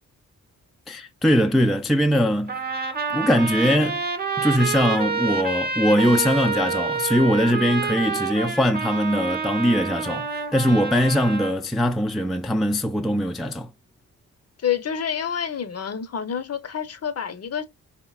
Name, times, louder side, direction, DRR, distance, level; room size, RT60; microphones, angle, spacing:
voice 1, 0.9-2.6 3.1-4.0 4.4-13.7, equal, ahead, 0.3 m, -21 dB
Trumpet, 2.5-11.5, right 5 dB, 25° right, 0.8 m, -28 dB
voice 2, 14.6-17.6, left 8 dB, 40° left, 0.7 m, -28 dB
4.4 x 2.8 x 2.3 m
supercardioid pair, 50°, 37 cm